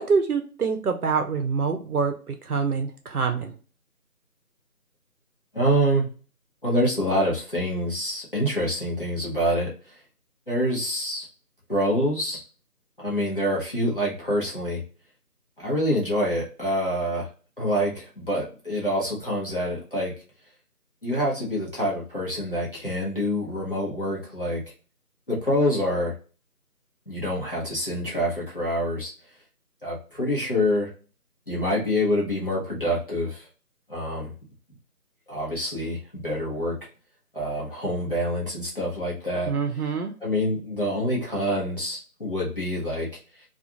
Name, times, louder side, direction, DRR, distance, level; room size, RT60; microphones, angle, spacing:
voice 1, 0.0-3.5 39.4-40.1, right 5 dB, 75° right, 5 dB, 0.7 m, -25 dB
voice 2, 5.5-6.1 6.6-9.7 10.5-11.3 11.7-12.4 13.0-14.8 15.6-17.3 17.6-20.1 21.0-24.6 25.3-26.1 27.1-29.1 29.8-30.9 31.5-33.5 33.9-34.3 35.3-36.8 37.3-39.5 40.2-43.1, equal, 35° left, -6 dB, 0.8 m, -26 dB
2.4 x 2.3 x 2.8 m, 0.37 s
figure-of-eight pair, 175°, 46 cm